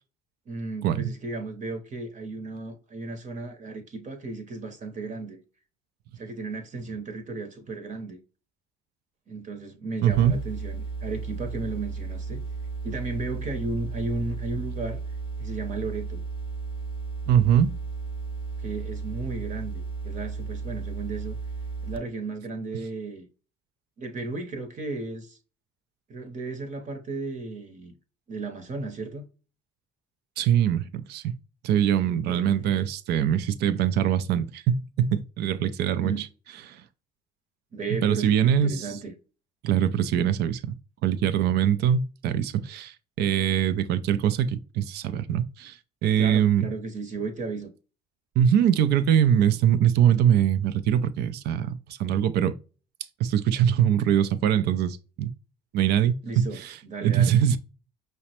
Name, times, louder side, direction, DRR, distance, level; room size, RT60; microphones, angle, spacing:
voice 1, 0.5-5.4 6.2-8.2 9.3-12.4 12.8-15.0 15.4-16.2 18.6-21.4 21.8-23.3 24.0-25.4 26.1-27.9 28.3-29.3 32.3-32.9 36.0-36.2 37.7-39.1 46.2-47.7 56.2-57.3, right 3 dB, 40° right, 0.9 m, -34 dB
voice 2, 10.0-10.4 17.3-17.7 30.4-31.4 31.6-36.3 36.7-36.8 37.9-38.9 39.6-40.7 41.0-46.7 48.4-52.6 53.2-55.3 55.7-57.6, right 9 dB, 60° right, 0.5 m, -23 dB
sound 1, 10.1-22.0, right 4 dB, 25° left, 0.7 m, -34 dB
5.6 x 2.1 x 2.8 m
hypercardioid pair, 65°, 19 cm